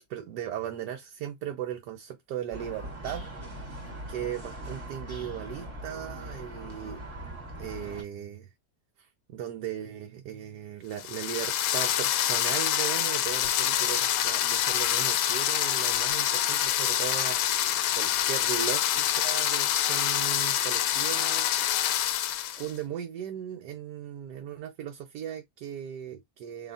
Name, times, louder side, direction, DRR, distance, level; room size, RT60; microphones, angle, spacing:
voice 1, 0.0-3.3 4.1-7.0 7.6-8.5 9.0-17.7 18.0-21.5 22.6-26.7, right 10 dB, 75° right, 1.3 m, -37 dB
sound 1, 2.5-8.0, right 1 dB, 20° right, 1.0 m, -41 dB
sound 2, 11.0-22.7, left 11 dB, 85° left, 1.2 m, -26 dB
4.1 x 3.3 x 2.6 m
omnidirectional pair, 1.8 m